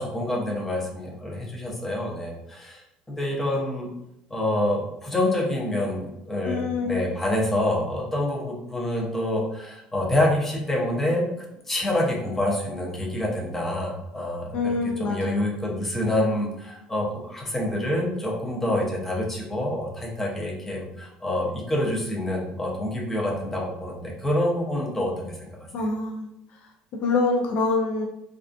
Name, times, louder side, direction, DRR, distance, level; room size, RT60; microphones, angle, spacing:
voice 1, 0.0-2.8 3.1-3.9 4.3-11.2 11.7-25.7, left 1 dB, 10° left, -2 dB, 0.6 m, -27 dB
voice 2, 6.5-7.0 14.5-15.4 25.7-26.3 26.9-28.1, left 3 dB, 55° left, 1 dB, 0.3 m, -25 dB
2.4 x 2.3 x 2.4 m, 0.86 s
cardioid pair, 130°, 3 cm